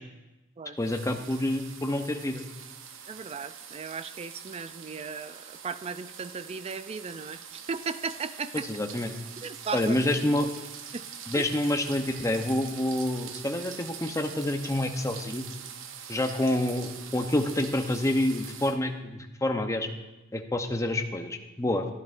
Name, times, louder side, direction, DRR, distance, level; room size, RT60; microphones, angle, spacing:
voice 1, 0.8-2.4 8.5-9.1 9.7-10.5 11.3-15.5 16.1-19.9 20.3-21.9, left 1 dB, 15° left, 5 dB, 0.7 m, -28 dB
sound 1, 0.8-18.8, right 7 dB, 65° right, 0.7 m, -44 dB
voice 2, 3.1-8.7 9.4-10.0 10.9-11.1 11.3-11.5, right 5 dB, 30° right, 13 dB, 0.4 m, -36 dB
13.5 x 10.5 x 2.5 m, 1.0 s
head